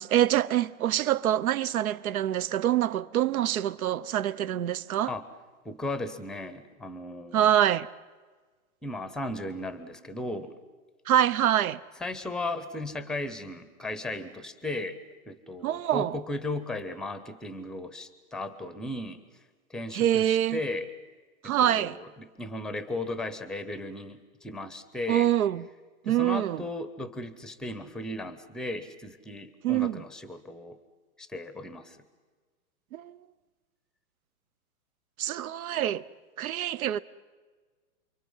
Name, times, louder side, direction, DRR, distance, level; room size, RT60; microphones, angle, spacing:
voice 1, 0.0-5.1 7.3-7.9 11.1-11.8 15.6-16.2 19.9-20.6 21.4-22.0 25.1-25.7 26.1-26.6 29.6-30.0 32.9-33.2 35.2-36.0 36.4-37.0, right 11 dB, 70° right, 0.9 m, -25 dB
voice 2, 5.6-7.5 8.8-10.5 12.0-15.0 15.3-19.2 19.7-20.9 21.4-25.3 26.1-30.8 31.2-32.0, left 2 dB, ahead, 0.7 m, -36 dB
28.5 x 23.5 x 5.6 m
hypercardioid pair, 140°, 44 cm